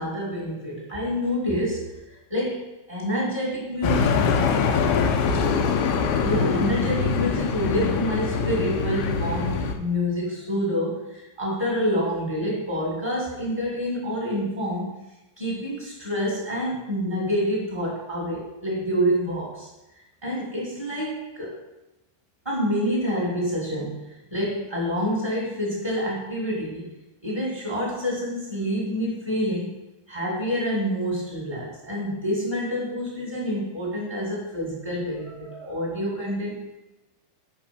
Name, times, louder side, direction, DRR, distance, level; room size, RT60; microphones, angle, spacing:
voice 1, 0.0-4.2 6.2-14.9 15.4-19.7 20.2-21.6 22.4-26.9 27.2-29.7 30.1-36.7, equal, 15° right, -5 dB, 1.1 m, -27 dB
sound 1, 3.8-9.7, left 5 dB, 80° left, 2.4 m, -23 dB
8.5 x 5.2 x 5.3 m, 0.96 s
omnidirectional pair, 4.7 m